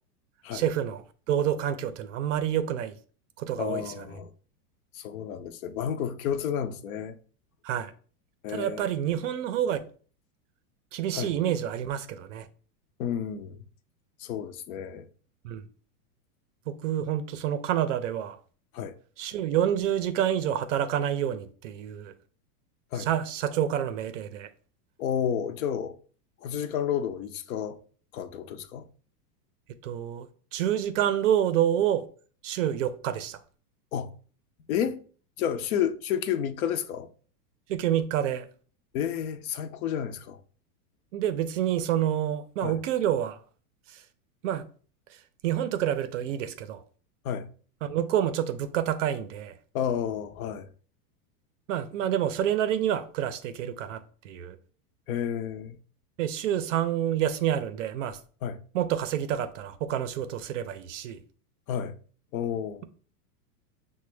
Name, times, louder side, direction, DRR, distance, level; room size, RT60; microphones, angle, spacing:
voice 1, 0.5-1.0 1.3-3.0 3.4-4.0 7.6-7.9 8.5-9.8 10.9-12.5 15.4-15.6 16.7-18.4 19.2-22.1 23.0-24.5 29.8-32.1 32.4-33.4 37.7-38.5 41.1-43.4 43.9-44.0 44.4-44.7 45.4-46.8 47.8-49.5 51.7-54.6 56.2-58.2 58.7-61.2, right 10 dB, 55° right, 0.5 m, -28 dB
voice 2, 3.6-4.3 4.9-7.2 8.4-8.9 11.1-11.3 13.0-13.6 14.2-15.1 18.7-18.9 22.9-23.1 25.0-26.0 26.4-27.8 28.1-28.9 33.9-34.1 34.7-35.0 35.4-37.1 38.9-40.4 42.6-42.8 47.2-47.5 49.7-50.7 55.1-55.8 58.4-58.6 61.7-61.9 62.3-62.8, left 9 dB, 65° left, 0.5 m, -31 dB
5.9 x 2.1 x 3.1 m
supercardioid pair, 155°, 46 cm